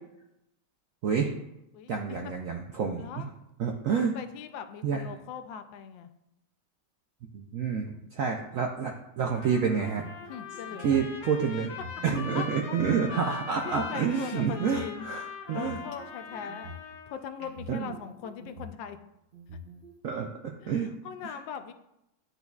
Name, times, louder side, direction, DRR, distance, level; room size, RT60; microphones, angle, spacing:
voice 1, 1.0-1.4 1.9-3.3 3.6-4.1 4.8-5.0 7.3-10.0 10.8-11.7 12.0-15.8 17.7-18.0 20.0-20.9 21.2-21.4, right 6 dB, 75° right, 2 dB, 0.7 m, -29 dB
voice 2, 4.0-6.1 10.3-11.0 12.3-12.8 13.1-13.4 13.6-15.1 15.5-16.7 17.1-19.0 20.6-21.7, left 7 dB, 90° left, 9 dB, 1.3 m, -40 dB
Trumpet, 9.3-17.2, left 5 dB, 65° left, 1.3 m, -41 dB
sound 1, 10.0-11.1 11.6-12.9 13.5-14.8 15.5-16.9 17.4-18.8 19.3-19.9, equal, 45° right, 0.8 m, -46 dB
10.5 x 3.8 x 2.3 m, 0.87 s
omnidirectional pair, 2.0 m